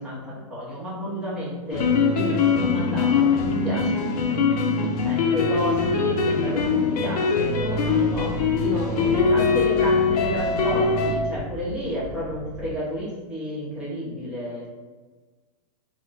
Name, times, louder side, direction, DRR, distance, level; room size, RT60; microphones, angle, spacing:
voice 1, 0.0-1.9 2.5-3.9 4.3-4.7 5.0-8.3 9.0-14.7, equal, 5° right, -9 dB, 0.9 m, -32 dB
sound 1, 1.7-11.1, left 5 dB, 70° left, 0.6 m, -22 dB
voice 2, 2.1-2.5 3.7-4.2 4.8-5.0 8.6-9.8, right 3 dB, 85° right, 2 dB, 0.6 m, -33 dB
sound 2, 7.5-12.7, right 2 dB, 50° right, 0.8 m, -38 dB
2.3 x 2.1 x 3.7 m, 1.3 s
hypercardioid pair, 140°, 21 cm